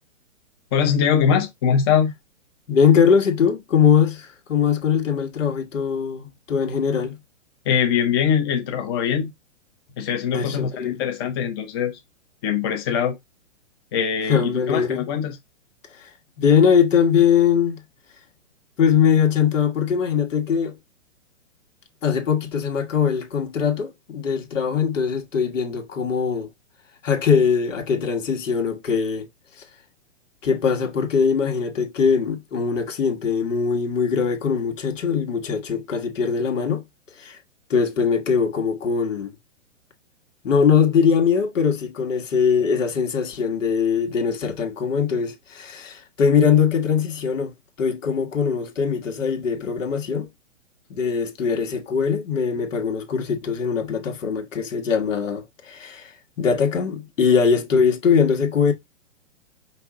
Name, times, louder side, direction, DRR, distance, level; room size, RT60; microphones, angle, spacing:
voice 1, 0.7-2.1 7.7-9.3 10.0-12.0 12.4-13.2 13.9-15.4, left 7 dB, 20° left, 0.6 m, -22 dB
voice 2, 2.7-7.1 10.3-11.0 14.3-15.0 16.0-16.1 16.4-17.8 18.8-20.8 22.0-26.5 27.0-29.3 30.4-36.8 37.2-37.4 37.7-39.4 40.4-50.3 50.9-58.7, left 6 dB, 80° left, 1.5 m, -21 dB
5.4 x 2.6 x 3.5 m
hypercardioid pair, 160°, 37 cm